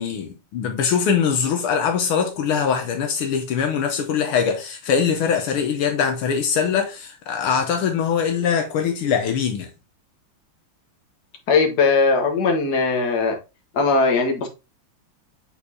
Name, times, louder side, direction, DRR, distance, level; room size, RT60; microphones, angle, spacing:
voice 1, 0.0-9.7, left 7 dB, 80° left, 1.7 m, -22 dB
voice 2, 11.5-13.4 13.7-14.5, left 4 dB, 50° left, 1.8 m, -19 dB
8.3 x 4.3 x 2.8 m
omnidirectional pair, 2.4 m